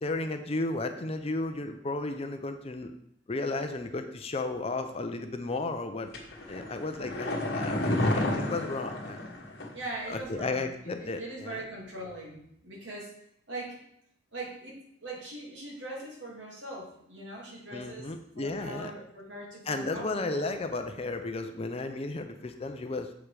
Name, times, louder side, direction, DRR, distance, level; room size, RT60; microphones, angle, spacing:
voice 1, 0.0-2.9 3.3-6.1 6.5-9.2 10.1-11.7 17.7-18.9 19.7-23.1, left 2 dB, 30° left, 7 dB, 0.5 m, -34 dB
sound 1, 6.1-9.8 10.1-10.2, left 1 dB, 55° left, 1.3 m, -31 dB
voice 2, 9.7-13.1 13.5-13.8 14.3-18.1 18.4-20.5, right 1 dB, 65° right, -3 dB, 2.3 m, -41 dB
7.3 x 5.0 x 4.8 m, 0.73 s
head